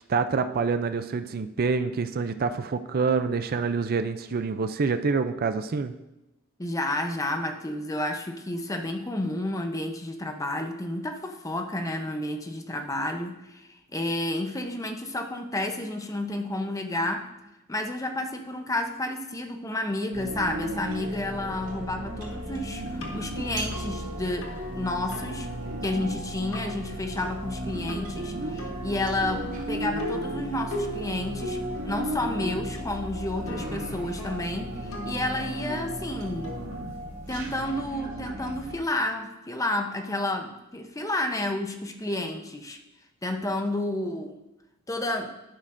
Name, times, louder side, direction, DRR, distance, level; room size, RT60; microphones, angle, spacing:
voice 1, 0.1-5.9, right 4 dB, 45° right, 10 dB, 0.4 m, -26 dB
voice 2, 6.6-17.3 17.7-25.5 25.8-36.5 37.3-42.8 43.2-44.4 44.9-45.3, left 1 dB, 15° left, 5 dB, 0.7 m, -31 dB
sound 1, 20.1-38.7, right 1 dB, 85° right, 2.2 m, -35 dB
sound 2, 22.2-37.6, left 1 dB, 80° left, 1.7 m, -40 dB
11.0 x 10.5 x 2.6 m, 0.97 s
head